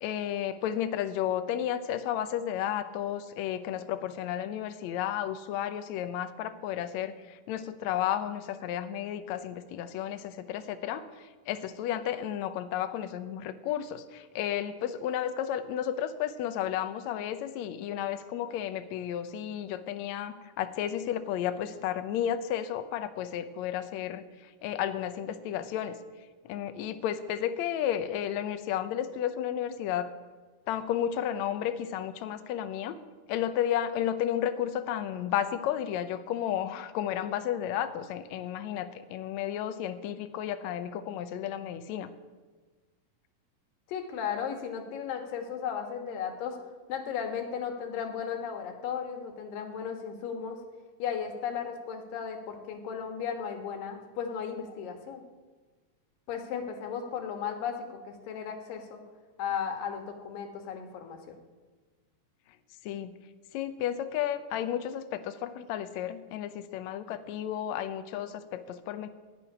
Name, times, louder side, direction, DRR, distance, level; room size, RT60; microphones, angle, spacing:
voice 1, 0.0-26.0 26.5-30.1 30.7-33.0 33.3-42.1 62.8-63.2 63.5-69.1, left 10 dB, 75° left, 10 dB, 1.8 m, -32 dB
voice 2, 43.9-46.6 46.9-50.6 51.0-55.2 56.3-59.0 59.4-61.4, left 7 dB, 90° left, 4 dB, 3.1 m, -35 dB
16.0 x 6.3 x 9.7 m, 1.4 s
omnidirectional pair, 3.8 m